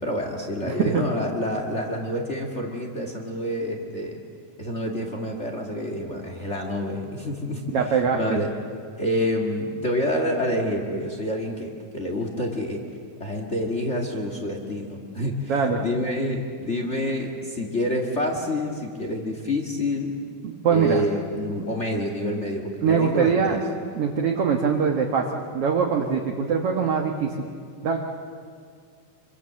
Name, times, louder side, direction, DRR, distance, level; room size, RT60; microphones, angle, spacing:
voice 1, 0.0-4.2 4.6-8.5 9.0-12.8 13.2-20.1 20.7-23.6, left 1 dB, 35° left, 2 dB, 1.0 m, -28 dB
voice 2, 0.6-1.1 7.7-8.4 15.5-15.8 20.4-21.0 22.8-23.6 23.9-27.5 27.8-28.0, right 6 dB, 60° right, 2 dB, 1.6 m, -23 dB
26.0 x 25.0 x 7.6 m, 2.1 s
omnidirectional pair, 4.5 m